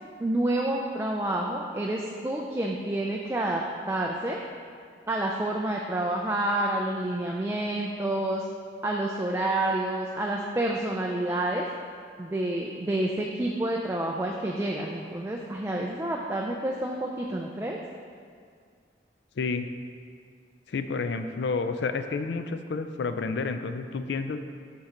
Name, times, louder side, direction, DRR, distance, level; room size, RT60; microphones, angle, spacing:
voice 1, 0.2-3.6 3.9-4.4 5.1-8.5 8.8-11.7 12.2-17.8, right 1 dB, 15° right, -1 dB, 0.3 m, -28 dB
voice 2, 19.4-19.7 20.7-24.5, left 4 dB, 70° left, 9 dB, 0.4 m, -30 dB
7.2 x 5.7 x 3.8 m, 2.1 s
head